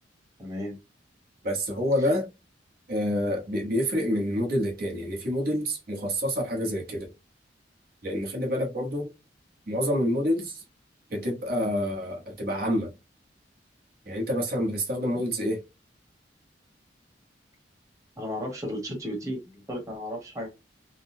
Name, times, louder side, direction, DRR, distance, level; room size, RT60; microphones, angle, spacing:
voice 1, 0.4-0.8 2.0-2.1 18.2-20.5, equal, 20° right, 1.2 m, -34 dB
voice 2, 1.4-2.3 2.9-7.1 8.0-9.1 9.7-10.6 11.1-12.9 14.1-15.6, equal, 55° right, 1.1 m, -27 dB
3.8 x 2.2 x 2.6 m
head